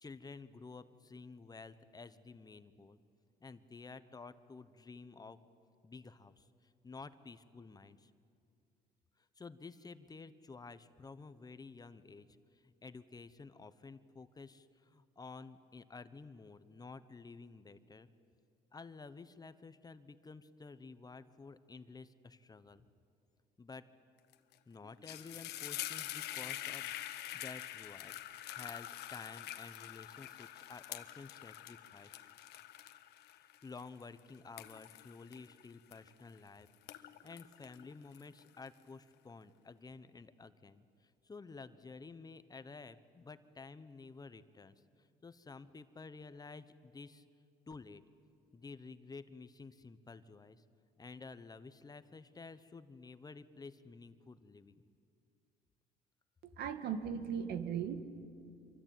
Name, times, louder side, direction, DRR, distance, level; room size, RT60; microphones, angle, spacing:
voice 1, 0.0-3.0 3.4-5.4 5.8-8.1 9.4-12.3 12.5-18.1 18.7-22.8 23.6-23.8 24.7-26.9 27.3-28.2 28.5-32.3 33.4-47.2 47.7-48.0 48.5-50.6 51.0-54.7, left 4 dB, 20° left, 12 dB, 1.1 m, -52 dB
sound 1, 24.3-24.5 24.8-36.4 36.7-38.7, left 13 dB, 80° left, 1.4 m, -46 dB
voice 2, 56.4-58.0, right 7 dB, 75° right, 9 dB, 2.2 m, -38 dB
26.5 x 24.0 x 9.3 m, 2.3 s
cardioid pair, 110°, 17 cm